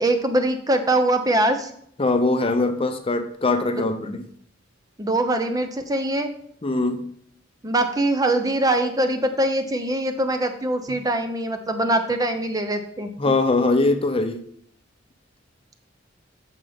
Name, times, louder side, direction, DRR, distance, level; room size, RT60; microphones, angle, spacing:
voice 1, 0.0-1.7 3.8-4.2 5.0-6.3 7.6-13.1, right 1 dB, 20° right, 7 dB, 0.6 m, -23 dB
voice 2, 2.0-4.2 6.6-7.0 13.2-14.4, left 2 dB, 30° left, 7 dB, 0.6 m, -22 dB
8.9 x 6.8 x 3.5 m, 0.64 s
head